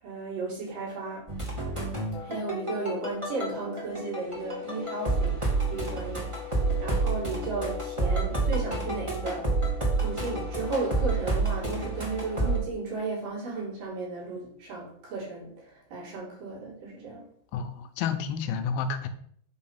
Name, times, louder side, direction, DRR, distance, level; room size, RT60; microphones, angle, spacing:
voice 1, 0.0-1.3 2.2-5.4 5.7-9.7 10.0-17.3, right 3 dB, 60° right, -5 dB, 4.9 m, -34 dB
sound 1, 1.3-12.6, right 2 dB, 15° right, 1.2 m, -29 dB
voice 2, 17.5-19.1, left 6 dB, 85° left, 8 dB, 2.6 m, -30 dB
8.5 x 4.4 x 5.9 m, 0.62 s
omnidirectional pair, 4.3 m